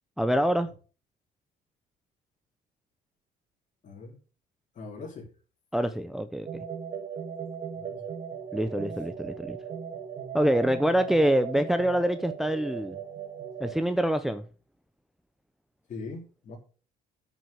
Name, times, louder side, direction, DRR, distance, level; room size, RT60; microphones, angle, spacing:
voice 1, 0.2-0.7 5.7-6.5 8.5-9.6 10.3-13.0 13.6-14.5, equal, ahead, 0.7 m, -25 dB
voice 2, 3.8-4.2 4.8-5.3 7.8-8.1 15.9-16.6, left 3 dB, 50° left, 4.0 m, -41 dB
sound 1, 6.5-13.8, right 7 dB, 40° right, 1.6 m, -38 dB
9.1 x 6.2 x 6.7 m
cardioid pair, 110°, 17 cm